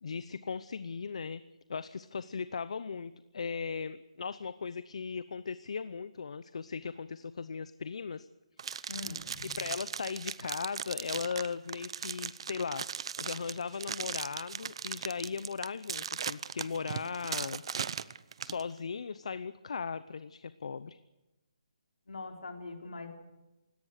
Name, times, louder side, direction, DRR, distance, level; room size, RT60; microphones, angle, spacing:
voice 1, 0.0-1.4 1.7-8.3 8.7-12.9 13.2-17.6 18.4-21.0, left 5 dB, 65° left, 14 dB, 0.8 m, -38 dB
sound 1, 8.6-18.6, right 7 dB, 50° right, 0.8 m, -38 dB
voice 2, 8.9-9.6 22.1-23.1, left 3 dB, 90° left, 2 dB, 4.5 m, -42 dB
28.0 x 17.5 x 6.7 m, 1.0 s
hypercardioid pair, 160°, 4 cm